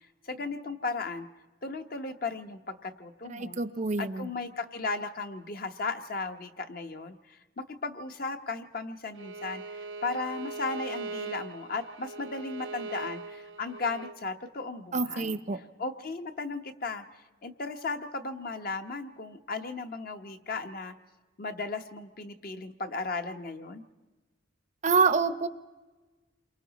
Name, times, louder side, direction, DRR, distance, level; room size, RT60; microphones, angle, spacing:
voice 1, 0.3-1.3 1.6-3.6 4.0-17.0 17.4-20.9 21.4-23.8, left 3 dB, 50° left, 6 dB, 0.9 m, -36 dB
voice 2, 3.3-4.3 14.9-15.6 24.8-25.5, right 4 dB, 40° right, 12 dB, 0.6 m, -26 dB
Bowed string instrument, 9.2-14.2, right 3 dB, 90° right, 0.8 m, -40 dB
28.0 x 23.5 x 4.1 m, 1.2 s
head